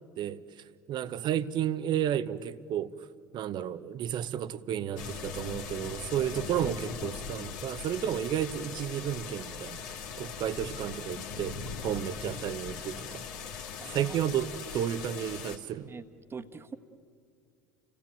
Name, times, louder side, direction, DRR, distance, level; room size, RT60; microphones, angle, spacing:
voice 1, 0.9-2.9 3.3-9.8 10.2-13.2 13.9-15.9, right 10 dB, 45° right, 0.9 m, -32 dB
sound 1, 5.0-15.6, left 6 dB, 65° left, 2.1 m, -40 dB
voice 2, 13.8-14.2 15.9-16.8, right 4 dB, 20° right, 1.4 m, -43 dB
30.0 x 17.0 x 9.3 m
figure-of-eight pair, 70°, 10 cm